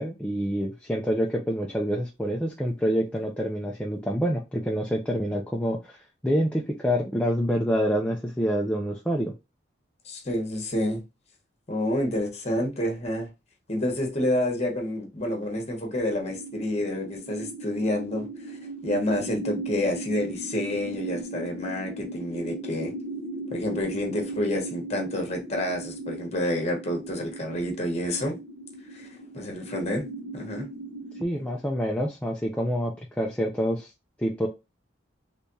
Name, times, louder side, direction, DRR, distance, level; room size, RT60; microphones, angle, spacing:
voice 1, 0.0-9.3 31.1-33.9 34.2-34.5, equal, 5° left, 0.4 m, -27 dB
voice 2, 10.0-11.0 11.7-13.3 13.7-22.9 23.5-28.3 28.9-29.1 29.3-30.1 30.3-30.7, left 1 dB, 35° left, 1.1 m, -29 dB
sound 1, 16.2-31.2, right 2 dB, 65° right, 1.0 m, -38 dB
3.4 x 3.2 x 2.7 m
head